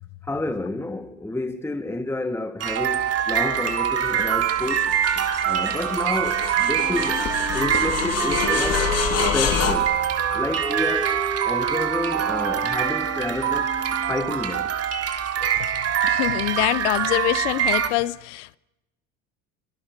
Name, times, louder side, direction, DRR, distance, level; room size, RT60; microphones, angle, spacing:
voice 1, 0.2-4.9 5.4-7.2 7.5-8.9 9.3-10.0 10.3-11.1 11.4-13.7 14.1-14.7, left 2 dB, 5° left, 1.8 m, -29 dB
sound 1, 2.6-17.9, right 9 dB, 45° right, 3.4 m, -24 dB
sound 2, 4.1-9.7, left 8 dB, 50° left, 3.9 m, -27 dB
Wind instrument woodwind instrument, 6.7-14.4, right 3 dB, 10° right, 1.5 m, -33 dB
voice 2, 16.0-18.6, left 17 dB, 90° left, 0.9 m, -25 dB
30.0 x 25.0 x 6.7 m
supercardioid pair, 105°, 33 cm